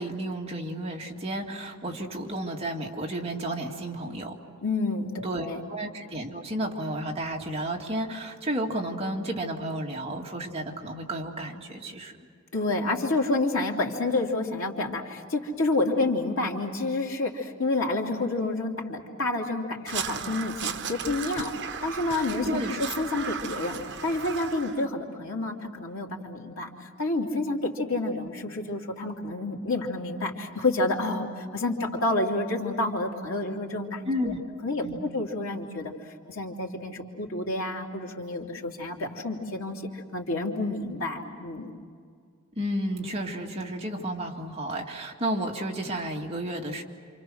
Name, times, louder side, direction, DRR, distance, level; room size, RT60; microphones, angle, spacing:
voice 1, 0.0-4.4 5.2-12.1 22.4-22.8 34.1-34.4 34.8-35.1 42.6-46.8, right 1 dB, 30° right, -1 dB, 2.3 m, -32 dB
voice 2, 4.6-5.6 12.5-21.5 21.8-22.6 23.0-34.3 34.6-35.9 36.3-41.7, left 2 dB, 80° left, 0 dB, 2.9 m, -29 dB
Crow, 19.9-24.9, right 7 dB, 60° right, 1.1 m, -35 dB
28.5 x 27.0 x 6.4 m, 2.1 s
head